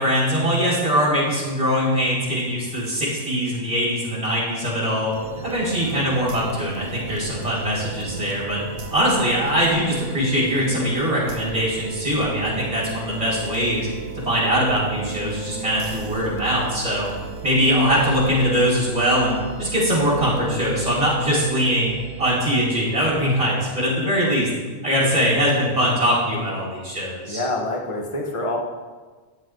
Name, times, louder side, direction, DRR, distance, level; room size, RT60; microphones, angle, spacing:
voice 1, 0.0-8.6 8.9-13.9 14.1-17.1 17.4-24.5 24.8-27.4, equal, 30° right, -6 dB, 4.4 m, -22 dB
sound 1, 5.1-24.3, right 5 dB, 80° right, 1.3 m, -35 dB
voice 2, 27.3-28.6, left 1 dB, 25° left, 1 dB, 1.3 m, -26 dB
13.5 x 10.0 x 3.9 m, 1.4 s
omnidirectional pair, 1.3 m